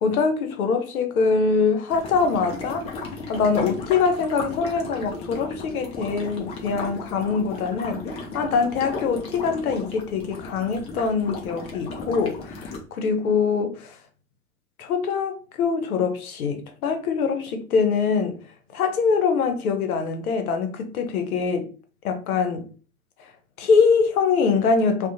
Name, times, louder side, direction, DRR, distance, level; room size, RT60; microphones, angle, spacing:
voice 1, 0.0-2.9 3.3-14.0 14.8-18.4 18.7-21.7 22.0-22.7 23.6-25.1, left 5 dB, 75° left, 0.7 m, -23 dB
sound 1, 1.9-12.8, left 3 dB, 15° left, 0.3 m, -35 dB
2.4 x 2.2 x 2.7 m
hypercardioid pair, 95°, 44 cm